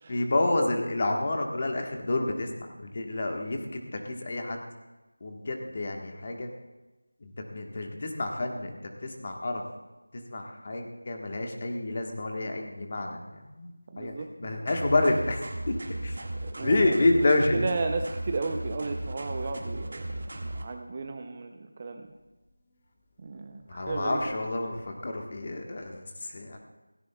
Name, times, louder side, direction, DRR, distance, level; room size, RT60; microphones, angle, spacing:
voice 1, 0.1-4.6 5.2-6.5 7.2-9.6 10.1-15.7 16.0-16.2 16.6-17.7 23.5-26.6, left 2 dB, 30° left, 3 dB, 1.3 m, -29 dB
voice 2, 13.9-14.7 16.4-16.9 17.5-22.1 23.2-24.2, right 3 dB, 20° right, 6 dB, 0.6 m, -34 dB
sound 1, 14.7-20.6, right 1 dB, 45° right, 1.8 m, -36 dB
17.0 x 16.0 x 2.3 m, 1.1 s
figure-of-eight pair, 175°, 0 cm